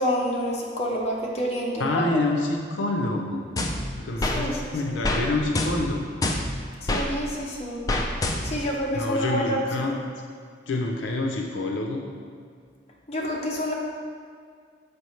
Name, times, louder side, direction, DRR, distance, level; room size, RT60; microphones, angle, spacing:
voice 1, 0.0-2.2 4.3-4.6 6.8-7.8 8.4-10.0 13.1-13.7, equal, 35° left, -3 dB, 0.9 m, -28 dB
voice 2, 1.8-3.5 4.0-6.2 8.9-10.0 10.7-12.0, left 2 dB, 85° left, 1 dB, 0.5 m, -27 dB
sound 1, 3.6-4.4 5.0-5.2 5.5-7.1 7.9-8.7, left 1 dB, 20° left, 0.3 m, -26 dB
6.9 x 4.7 x 3.2 m, 2.1 s
head